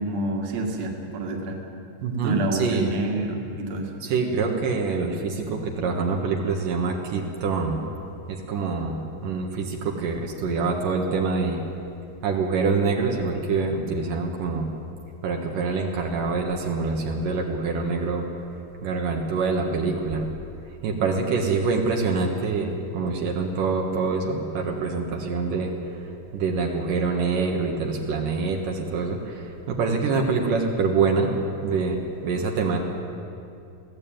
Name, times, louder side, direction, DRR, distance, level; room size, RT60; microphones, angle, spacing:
voice 1, 0.0-1.6 2.2-3.9, right 2 dB, 55° right, 2 dB, 3.0 m, -28 dB
voice 2, 2.0-2.9 4.0-7.8 8.3-11.6 12.2-14.7 15.2-18.3 18.8-20.3 20.8-25.7 26.3-31.3 31.6-32.8, right 4 dB, 75° right, 1 dB, 3.1 m, -25 dB
22.0 x 16.0 x 9.0 m, 2.6 s
omnidirectional pair, 3.9 m